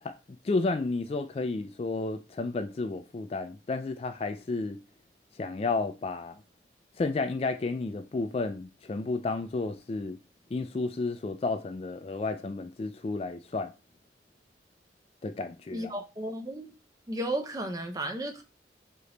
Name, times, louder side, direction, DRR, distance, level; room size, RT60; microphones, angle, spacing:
voice 1, 0.0-4.8 5.4-6.4 7.0-10.2 10.5-13.7 15.2-15.9, left 3 dB, 35° left, 0.3 m, -32 dB
voice 2, 15.7-16.7 17.1-18.4, right 1 dB, 20° right, 0.5 m, -34 dB
3.3 x 2.9 x 3.8 m
head